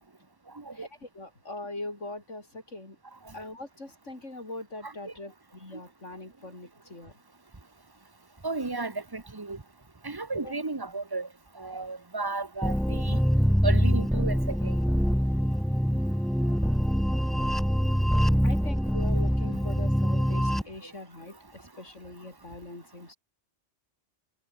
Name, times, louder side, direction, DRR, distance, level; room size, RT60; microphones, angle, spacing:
voice 1, 0.7-3.0 3.3-7.1 10.3-10.5 18.4-21.4 21.8-23.2, left 2 dB, 85° left, 6.0 m, -41 dB
voice 2, 8.4-9.6 10.0-11.3 11.6-13.2 13.6-14.3 14.6-14.7, right 3 dB, 20° right, 1.3 m, -33 dB
sound 1, 12.6-20.6, equal, ahead, 0.7 m, -24 dB
omnidirectional pair, 1.2 m